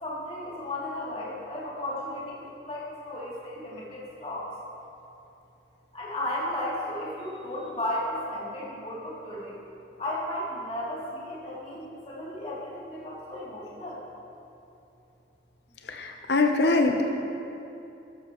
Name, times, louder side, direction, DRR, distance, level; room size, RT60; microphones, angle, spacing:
voice 1, 0.0-4.5 5.9-9.6 10.0-14.0, left 1 dB, 35° left, -8 dB, 2.9 m, -34 dB
voice 2, 15.9-17.1, left 3 dB, 75° left, 3 dB, 0.8 m, -23 dB
13.0 x 12.0 x 3.1 m, 2.8 s
head